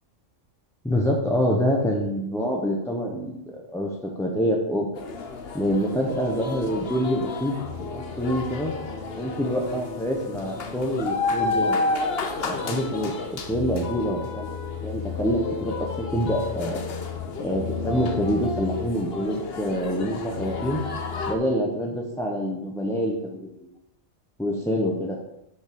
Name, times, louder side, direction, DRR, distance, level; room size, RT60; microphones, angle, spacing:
voice 1, 0.8-4.9 5.5-7.5 7.9-8.7 9.2-11.8 12.4-14.4 14.8-16.8 17.4-20.8 21.3-23.5 24.4-25.2, equal, 5° left, -2 dB, 1.0 m, -26 dB
sound 1, 5.0-21.4, left 4 dB, 55° left, 1.1 m, -31 dB
6.7 x 5.4 x 6.9 m, 0.83 s
omnidirectional pair, 1.3 m